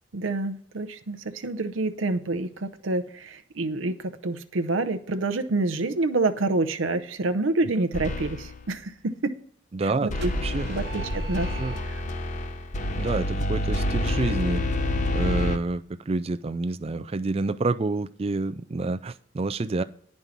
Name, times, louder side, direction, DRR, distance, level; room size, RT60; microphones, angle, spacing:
voice 1, 0.1-9.3 9.8-10.3 10.7-11.5 11.8-12.0, right 2 dB, 75° right, 10 dB, 0.7 m, -27 dB
sound 1, 7.9-8.7 10.1-15.6, left 1 dB, 35° left, 0.7 m, -28 dB
voice 2, 9.7-10.1 10.4-10.7 11.5-11.8 12.9-14.6 15.1-19.8, right 3 dB, 30° right, 11 dB, 0.4 m, -28 dB
sound 2, 10.2-12.3, right 3 dB, 55° right, 1.0 m, -38 dB
9.9 x 5.4 x 5.9 m, 0.62 s
head